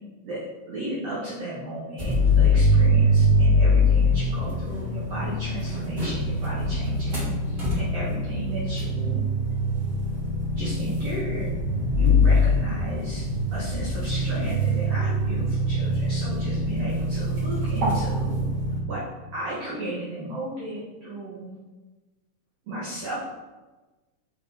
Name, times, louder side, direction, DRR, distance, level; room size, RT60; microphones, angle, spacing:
voice 1, 0.2-9.2 10.6-11.5 11.9-13.3 13.5-18.5 18.9-19.0 19.3-21.5 22.6-23.2, right 1 dB, 75° right, -7 dB, 1.5 m, -34 dB
sound 1, 2.0-18.8, left 1 dB, 40° right, 1.6 m, -23 dB
6.5 x 3.7 x 4.1 m, 1.2 s
omnidirectional pair, 4.5 m